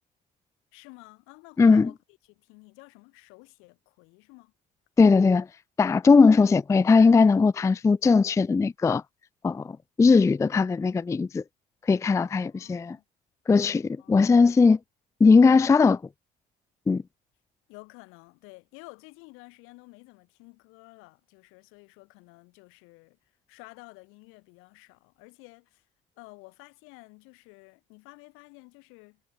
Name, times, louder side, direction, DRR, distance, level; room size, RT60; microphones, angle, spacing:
voice 1, 0.7-2.0 2.2-4.5 6.1-6.2 12.2-13.0 14.0-14.4 17.7-23.2 23.5-25.9 26.2-29.2, left 27 dB, 80° left, 5.2 m, -51 dB
voice 2, 1.6-1.9 5.0-5.5 5.8-9.0 9.4-9.7 10.0-11.4 11.9-13.0 13.5-14.8 15.2-16.0 16.9-17.0, left 4 dB, 15° left, 0.4 m, -19 dB
supercardioid pair, 70°, 21 cm